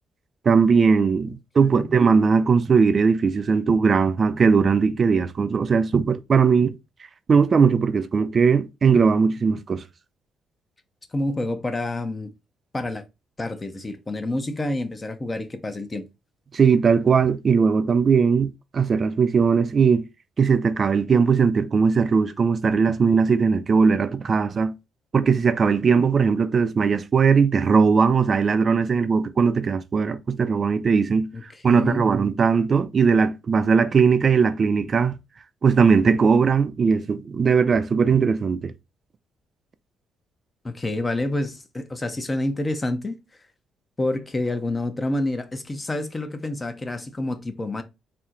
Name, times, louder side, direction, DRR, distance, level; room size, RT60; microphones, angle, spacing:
voice 1, 0.4-6.7 7.3-9.8 16.5-20.0 20.4-24.7 25.1-35.1 35.6-38.7, right 5 dB, 40° right, 0.3 m, -19 dB
voice 2, 11.1-12.3 12.7-13.0 13.4-16.1 31.3-32.1 40.6-43.2 44.0-47.8, left 2 dB, 25° left, 0.6 m, -28 dB
4.2 x 2.1 x 3.6 m
cardioid pair, 90°, 0 cm